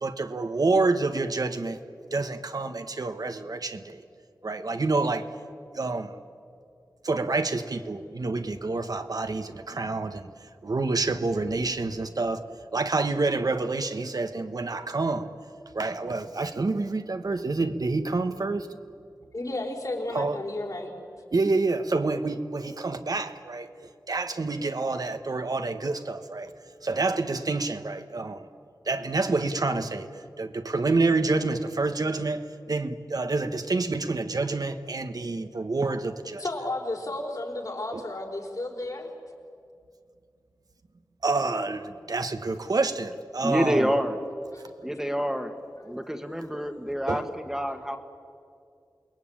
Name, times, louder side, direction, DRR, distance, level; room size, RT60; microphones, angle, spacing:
voice 1, 0.0-1.8 2.1-4.0 4.4-5.3 5.7-6.2 7.0-10.3 10.6-12.4 12.7-15.3 15.7-18.7 20.1-20.4 21.3-23.7 24.1-26.5 26.8-28.5 28.9-36.4 37.9-38.0 41.2-43.9 47.1-47.2, right 3 dB, 65° right, 8 dB, 1.3 m, -28 dB
voice 2, 19.3-20.9 36.4-39.1 44.5-44.6, left 2 dB, 60° left, 0 dB, 4.8 m, -33 dB
voice 3, 43.4-44.2 44.8-45.5 45.8-48.0, equal, 5° right, 6 dB, 1.6 m, -27 dB
28.5 x 20.5 x 9.0 m, 2.3 s
wide cardioid pair, 70°, 7 cm